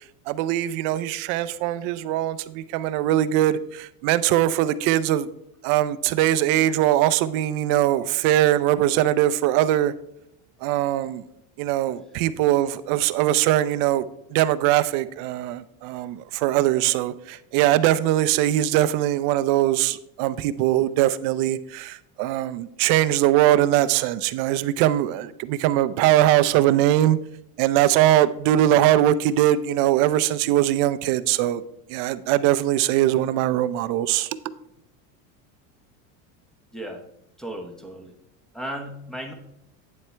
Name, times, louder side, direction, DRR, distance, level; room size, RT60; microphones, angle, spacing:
voice 1, 0.3-5.3 5.6-9.9 10.6-11.2 11.6-14.0 14.3-27.2 27.6-31.6 31.9-34.4, right 13 dB, 50° right, 0.5 m, -21 dB
voice 2, 37.4-38.1 38.5-39.3, right 1 dB, ahead, 0.9 m, -35 dB
9.4 x 7.4 x 3.3 m
supercardioid pair, 155°, 42 cm